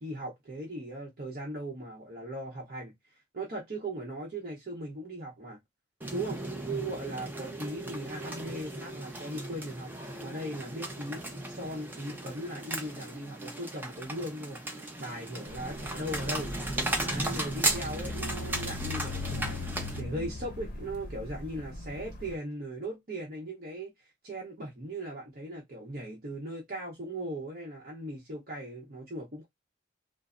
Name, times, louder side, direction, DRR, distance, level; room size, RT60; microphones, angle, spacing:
voice 1, 0.0-2.9 3.3-5.6 6.1-9.9 10.2-14.6 15.0-16.5 17.0-23.9 24.2-29.5, right 1 dB, 50° right, 0.8 m, -38 dB
sound 1, 6.0-20.0, right 1 dB, 10° right, 0.5 m, -36 dB
sound 2, 15.5-22.4, left 3 dB, 50° left, 0.7 m, -40 dB
3.1 x 2.0 x 2.4 m
head